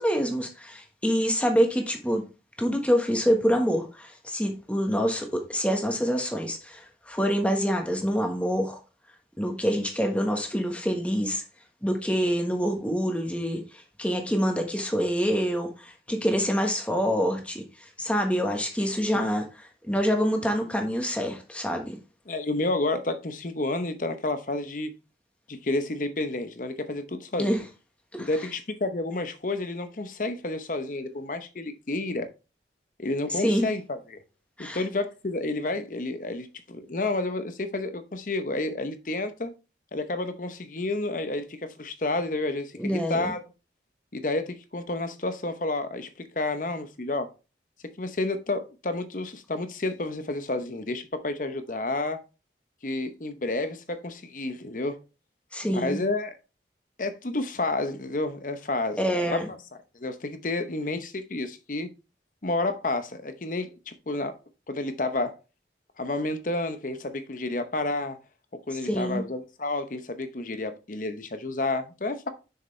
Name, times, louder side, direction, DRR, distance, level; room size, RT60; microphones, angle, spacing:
voice 1, 0.0-2.2 2.6-8.8 9.4-11.4 11.8-19.4 19.9-22.0 27.4-27.6 28.1-28.3 33.4-33.7 34.6-34.8 42.8-43.3 55.5-56.0 59.0-59.5 68.8-69.2, equal, 5° left, 1.3 m, -26 dB
voice 2, 22.3-24.9 25.5-27.6 28.2-32.3 33.0-34.2 34.6-39.5 39.9-43.4 44.1-47.3 48.0-52.2 52.8-55.0 55.7-56.4 57.0-59.4 59.9-61.9 62.4-64.4 64.7-65.4 66.0-68.2 68.7-72.3, left 2 dB, 45° left, 0.8 m, -30 dB
6.6 x 6.6 x 3.2 m
head